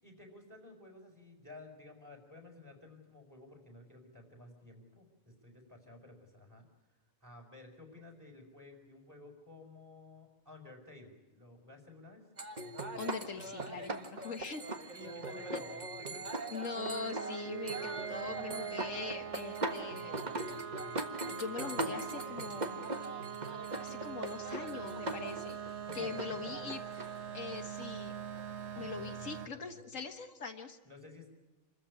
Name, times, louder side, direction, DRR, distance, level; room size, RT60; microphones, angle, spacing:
voice 1, 0.0-6.7 7.2-12.2 14.9-16.4 25.9-26.7 28.7-29.9 30.8-31.3, left 2 dB, 15° right, 2 dB, 5.8 m, -53 dB
sound 1, 12.4-28.7, right 2 dB, 35° right, 1.6 m, -41 dB
voice 2, 13.0-14.6 15.5-15.6 16.5-20.2 21.3-22.9 23.8-25.6 25.9-26.8 27.3-28.2 28.8-30.8, left 5 dB, 80° left, 5 dB, 1.9 m, -42 dB
sound 2, 16.8-29.5, right 8 dB, 60° right, 1.5 m, -43 dB
27.5 x 14.5 x 9.8 m, 1.1 s
omnidirectional pair, 1.3 m